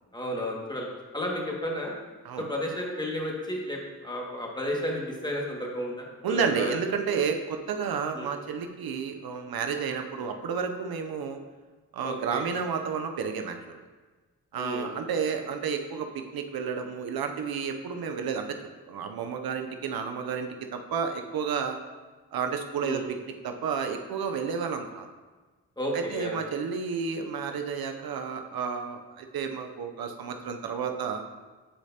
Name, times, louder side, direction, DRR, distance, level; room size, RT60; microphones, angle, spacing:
voice 1, 0.1-0.9 1.1-1.9 2.4-6.8 8.1-8.3 12.0-12.5 14.6-14.9 22.8-23.1 25.8-26.4, equal, 10° left, -2 dB, 1.9 m, -32 dB
voice 2, 6.2-11.4 11.9-13.8 14.5-18.6 18.9-21.8 22.3-23.0 23.4-25.1 25.9-31.2, right 6 dB, 70° right, 5 dB, 0.7 m, -31 dB
9.8 x 5.0 x 2.8 m, 1.3 s
supercardioid pair, 40°, 37 cm